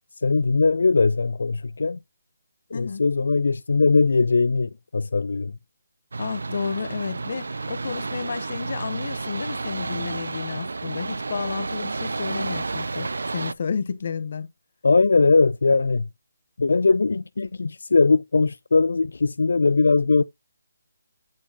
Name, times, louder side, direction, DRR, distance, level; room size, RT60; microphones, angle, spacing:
voice 1, 0.2-2.0 2.7-5.5 14.8-16.1 16.6-20.2, left 4 dB, 70° left, 0.3 m, -20 dB
voice 2, 2.7-3.0 6.2-14.5, left 5 dB, 40° left, 0.8 m, -31 dB
sound 1, 6.1-13.5, right 3 dB, 75° right, 0.4 m, -31 dB
8.5 x 3.9 x 2.8 m
hypercardioid pair, 175°, 0 cm